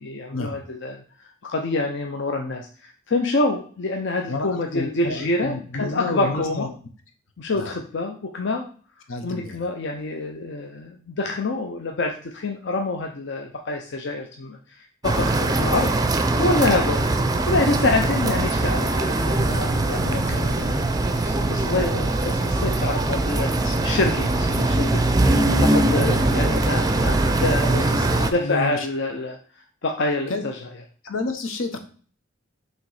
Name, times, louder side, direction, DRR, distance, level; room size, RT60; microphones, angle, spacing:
voice 1, 0.0-6.7 7.4-8.7 9.2-15.9 16.4-17.1 17.5-25.0 25.6-27.9 28.3-29.4 29.8-30.6, left 2 dB, 60° left, 3 dB, 0.6 m, -27 dB
voice 2, 4.3-6.7 7.5-7.7 9.1-9.7 16.6-16.8 20.3-20.5 23.6-23.7 25.4-26.2 27.7-28.9 30.3-30.4 31.0-31.8, left 3 dB, 80° left, 6 dB, 1.0 m, -30 dB
sound 1, 15.0-28.3, right 2 dB, 20° right, 0.5 m, -21 dB
6.5 x 3.1 x 4.8 m, 0.42 s
head